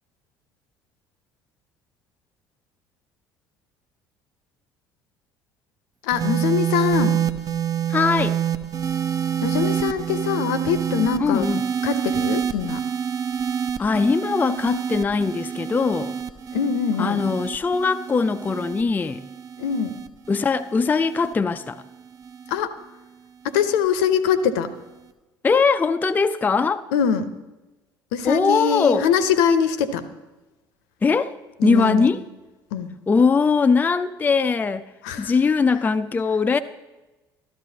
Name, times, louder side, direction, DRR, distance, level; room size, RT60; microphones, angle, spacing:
voice 1, 6.0-7.2 9.4-11.5 11.8-12.8 16.5-17.2 19.6-20.0 22.5-22.7 23.4-24.7 26.9-27.3 28.1-30.0 31.6-32.1 32.7-32.9 35.0-35.3, left 7 dB, 60° left, 0.7 m, -23 dB
sound 1, 6.1-22.6 23.5-23.8, right 8 dB, 35° right, 0.7 m, -27 dB
voice 2, 7.9-8.4 11.2-11.6 13.8-16.2 17.0-19.2 20.3-21.8 25.4-26.8 28.2-29.1 31.0-32.2 33.1-34.8 35.2-36.6, left 4 dB, 15° left, 0.4 m, -21 dB
13.0 x 13.0 x 2.8 m
figure-of-eight pair, 55°, 11 cm